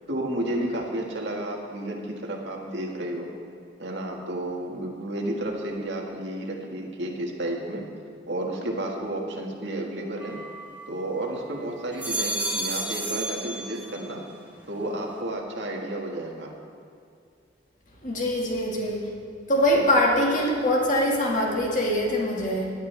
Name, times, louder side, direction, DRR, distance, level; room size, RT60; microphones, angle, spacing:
voice 1, 0.1-3.3 3.8-7.9 8.3-10.4 10.9-14.2 14.7-16.5 19.7-19.9, right 1 dB, 85° right, 0 dB, 1.8 m, -31 dB
sound 1, 10.2-11.3 11.8-14.2 14.6-15.2, right 2 dB, 10° right, 1.2 m, -32 dB
voice 2, 18.0-19.1 19.5-22.7, left 1 dB, 45° left, -2 dB, 2.1 m, -23 dB
17.5 x 11.0 x 3.4 m, 2.4 s
head